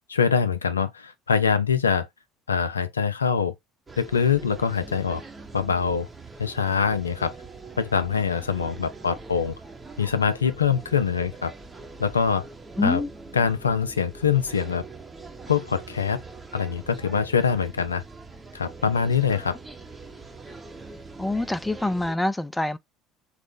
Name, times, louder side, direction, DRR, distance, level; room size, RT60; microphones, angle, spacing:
voice 1, 0.1-2.1 2.5-3.5 4.0-5.2 5.5-6.1 6.4-7.3 7.8-9.5 10.0-11.5 12.0-12.4 12.8-13.0 13.3-14.8 15.5-16.2 16.5-18.0 18.5-19.6, left 6 dB, 85° left, 0.3 m, -24 dB
sound 1, 3.9-22.2, right 3 dB, 20° right, 0.7 m, -43 dB
voice 2, 12.8-13.1 21.2-22.8, left 2 dB, 10° left, 0.3 m, -25 dB
3.2 x 2.0 x 3.4 m
figure-of-eight pair, 60°, 0 cm